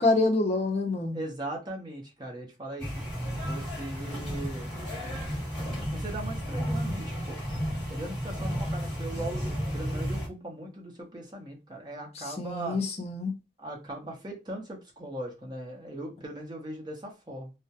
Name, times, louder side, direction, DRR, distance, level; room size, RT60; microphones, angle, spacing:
voice 1, 0.0-1.2 12.4-13.3, left 2 dB, 35° left, 0.5 m, -26 dB
voice 2, 1.1-3.1 3.4-4.7 5.9-7.4 7.9-9.5 9.7-12.8 13.6-17.5, right 1 dB, 25° right, 0.7 m, -39 dB
sound 1, 2.8-10.3, equal, 5° left, 1.3 m, -33 dB
2.3 x 2.1 x 2.7 m
head